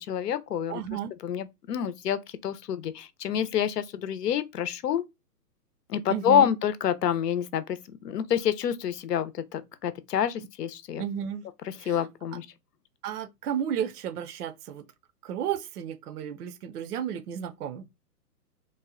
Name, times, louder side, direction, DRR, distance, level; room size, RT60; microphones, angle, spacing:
voice 1, 0.0-0.8 1.2-5.0 5.9-7.6 8.0-11.0 11.9-12.5, left 9 dB, 75° left, 0.7 m, -27 dB
voice 2, 0.7-1.1 6.1-6.5 11.0-11.5 11.8-12.1 13.0-14.8 15.2-17.9, right 9 dB, 70° right, 0.6 m, -33 dB
3.2 x 2.1 x 3.6 m
hypercardioid pair, 155°, 48 cm